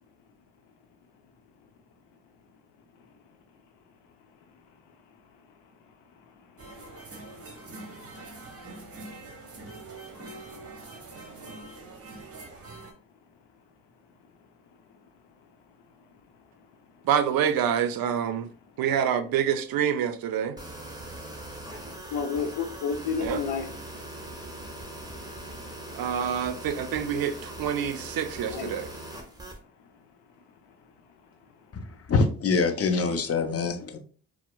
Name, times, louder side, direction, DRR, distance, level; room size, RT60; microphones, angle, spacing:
voice 1, 5.1-5.7 6.2-8.3 14.9-15.0 16.5-16.7 16.9-17.0 22.1-23.7 25.7-26.1 28.4-28.9 29.2-29.5 29.8-29.9 30.6-30.9 31.3-32.0, left 6 dB, 70° left, 0.7 m, -35 dB
sound 1, 6.6-12.9, right 2 dB, 35° right, 1.0 m, -44 dB
voice 2, 17.0-18.5 18.8-20.6 23.2-23.4 25.9-28.9, right 8 dB, 60° right, 0.5 m, -27 dB
sound 2, 20.6-29.6, right 1 dB, 10° right, 0.9 m, -41 dB
voice 3, 32.1-34.0, left 4 dB, 35° left, 0.6 m, -24 dB
4.2 x 2.0 x 2.2 m
supercardioid pair, 50°, 42 cm